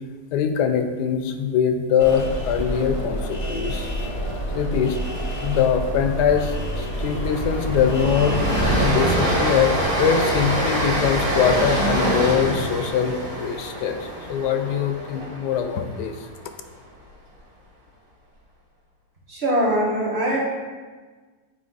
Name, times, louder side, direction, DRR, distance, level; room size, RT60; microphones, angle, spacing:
voice 1, 0.3-4.1 4.5-5.0 5.4-8.4 8.8-16.3, left 7 dB, 90° left, 7 dB, 1.2 m, -23 dB
sound 1, 2.0-8.9, equal, 25° left, 0.8 m, -28 dB
Train, 5.0-5.3 5.6-5.7 6.1-16.3, right 1 dB, 85° right, 2.4 m, -25 dB
voice 2, 19.3-20.4, equal, 40° right, -6 dB, 1.8 m, -22 dB
8.5 x 4.0 x 3.9 m, 1.4 s
omnidirectional pair, 1.7 m